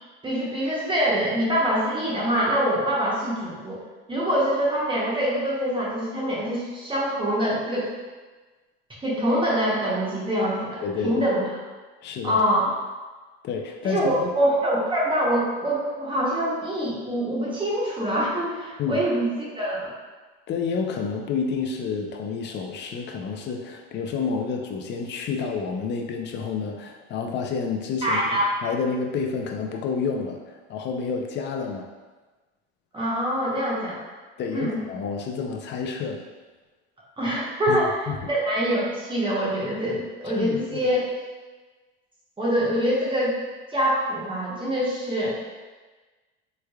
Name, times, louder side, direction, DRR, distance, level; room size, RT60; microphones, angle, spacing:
voice 1, 0.2-3.8 4.1-7.9 9.0-11.5 12.2-12.7 13.8-19.9 28.0-28.5 32.9-34.0 34.5-34.8 37.2-37.9 38.3-41.1 42.4-43.4 43.7-45.4, equal, 15° right, -6 dB, 0.8 m, -24 dB
voice 2, 10.8-11.3 12.0-12.4 13.4-14.3 18.8-19.0 20.5-30.4 30.7-31.9 34.4-36.2 37.7-37.8 38.1-38.2 40.3-40.8, left 5 dB, 35° left, 3 dB, 0.5 m, -29 dB
3.4 x 3.2 x 2.3 m, 1.3 s
supercardioid pair, 105°, 31 cm